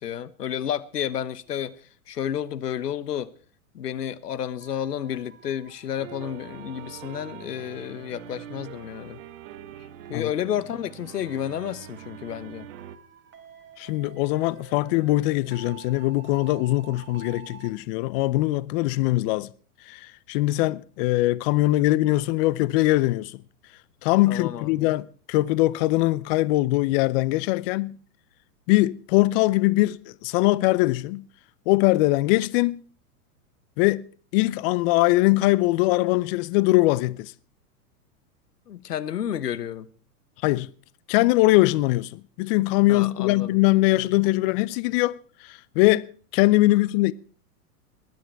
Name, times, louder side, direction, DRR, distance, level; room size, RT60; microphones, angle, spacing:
voice 1, 0.0-1.7 2.1-3.3 3.7-9.2 10.1-12.7 24.3-24.9 38.7-39.9 42.9-43.6, left 10 dB, 90° left, 1.2 m, -31 dB
Ambient Melody, 4.6-17.7, right 9 dB, 25° right, 2.9 m, -51 dB
sound 1, 6.0-13.0, right 11 dB, 50° right, 1.3 m, -43 dB
voice 2, 13.8-19.5 19.9-23.4 24.0-28.0 28.7-31.2 31.7-32.8 33.8-34.0 34.3-37.3 40.4-40.7 41.1-45.2 45.4-46.1 46.3-47.1, left 19 dB, 40° left, 0.6 m, -22 dB
21.0 x 9.5 x 4.6 m
hypercardioid pair, 120°, 46 cm